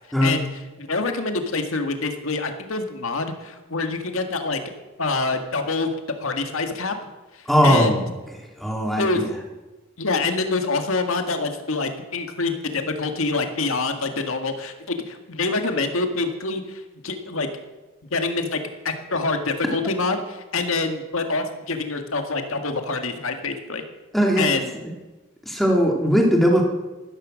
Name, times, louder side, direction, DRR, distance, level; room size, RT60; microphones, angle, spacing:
voice 1, 0.8-4.6 5.0-5.9 6.2-6.9 7.6-8.0 9.0-9.3 10.0-17.5 18.1-18.6 18.8-23.8 24.4-24.7, left 3 dB, 70° left, 6 dB, 1.8 m, -26 dB
voice 2, 7.5-8.1 8.6-9.3 24.1-24.5 25.5-26.6, equal, ahead, 0 dB, 2.4 m, -19 dB
14.0 x 13.5 x 6.4 m, 1.2 s
head